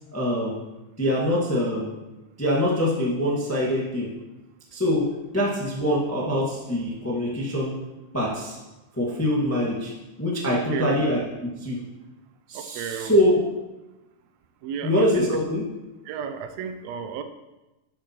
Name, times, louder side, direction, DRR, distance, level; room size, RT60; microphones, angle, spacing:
voice 1, 0.1-0.6 1.0-1.9 2.4-4.1 4.7-5.1 5.3-7.8 8.1-8.6 9.0-9.9 10.2-11.8 12.5-13.4 14.8-15.6, equal, 15° left, -5 dB, 0.4 m, -24 dB
voice 2, 10.5-11.0 12.5-13.2 14.6-15.4 16.0-17.2, right 8 dB, 90° right, 9 dB, 1.5 m, -33 dB
11.5 x 7.8 x 3.0 m, 1.0 s
omnidirectional pair, 3.7 m